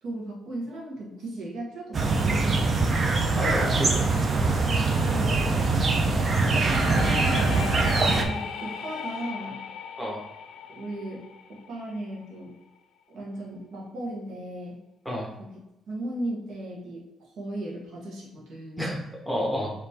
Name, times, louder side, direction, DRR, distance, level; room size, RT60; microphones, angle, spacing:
voice 1, 0.0-2.7 3.1-3.4 4.3-4.6 5.1-5.6 6.4-9.6 10.7-12.6 13.1-14.8 15.4-15.6 15.9-18.9, right 1 dB, 75° right, -3 dB, 1.5 m, -37 dB
sound 1, 1.9-8.2, right 3 dB, 40° right, 0.6 m, -23 dB
voice 2, 3.3-4.2 10.0-10.2 15.0-15.3 18.8-19.0 19.2-19.7, equal, ahead, -2 dB, 1.3 m, -29 dB
sound 2, 6.6-12.2, left 7 dB, 75° left, 0.4 m, -37 dB
4.2 x 3.1 x 3.6 m, 0.90 s
cardioid pair, 90°, 0 cm